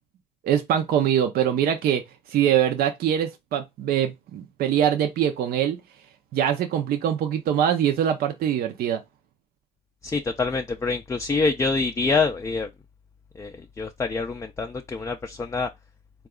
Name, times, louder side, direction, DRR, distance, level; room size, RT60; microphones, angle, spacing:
voice 1, 0.4-2.0 2.3-5.8 6.3-9.0, right 9 dB, 60° right, 0.6 m, -23 dB
voice 2, 10.0-12.7 13.4-15.7, left 4 dB, 20° left, 0.4 m, -26 dB
3.9 x 2.3 x 3.6 m
cardioid pair, 110°, 17 cm